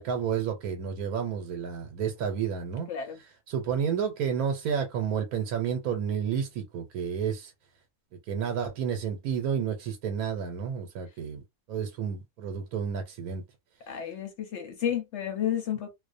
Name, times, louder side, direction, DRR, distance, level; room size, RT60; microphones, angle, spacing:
voice 1, 0.0-2.9 3.5-7.5 8.3-11.4 11.7-13.4, right 7 dB, 80° right, 1.1 m, -30 dB
voice 2, 2.9-3.2 13.9-15.9, left 9 dB, 65° left, 0.8 m, -31 dB
2.5 x 2.1 x 2.4 m
omnidirectional pair, 1.5 m